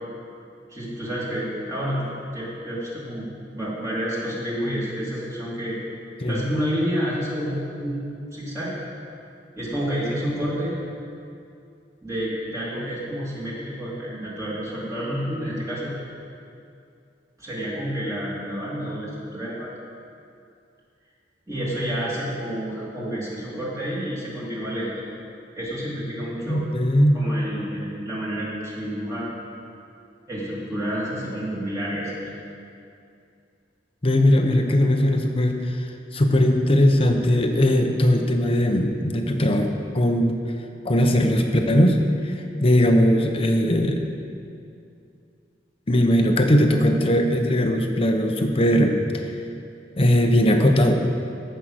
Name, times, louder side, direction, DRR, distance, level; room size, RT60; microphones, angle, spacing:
voice 1, 0.7-5.8 6.3-8.0 8.3-8.7 9.6-10.8 12.0-16.0 17.4-19.7 21.5-25.0 25.6-26.6 27.1-29.3 30.3-32.2, equal, 20° right, -7 dB, 2.5 m, -29 dB
voice 2, 26.5-27.2 34.0-40.4 40.8-42.0 42.2-44.0 45.9-49.3 50.0-50.9, equal, 30° left, 4 dB, 0.8 m, -19 dB
15.0 x 5.6 x 6.4 m, 2.5 s
head